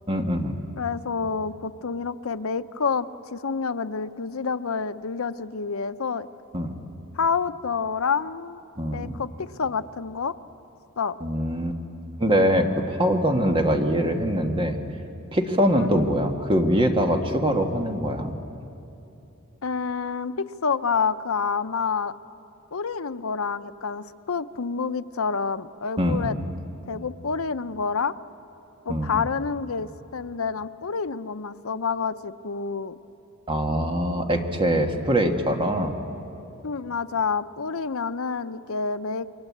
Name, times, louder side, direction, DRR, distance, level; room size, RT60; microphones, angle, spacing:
voice 1, 0.1-0.6 6.5-6.7 8.8-9.1 11.2-11.8 12.2-14.8 15.3-18.3 26.0-26.3 28.9-29.2 33.5-36.0, equal, 25° right, 4 dB, 1.6 m, -23 dB
voice 2, 0.8-6.3 7.1-8.6 8.9-10.4 11.0-11.2 15.8-16.0 19.6-22.1 22.7-26.4 26.9-28.2 28.9-33.0 36.6-39.3, left 5 dB, 75° left, 11 dB, 0.7 m, -28 dB
28.0 x 23.0 x 8.6 m, 2.9 s
head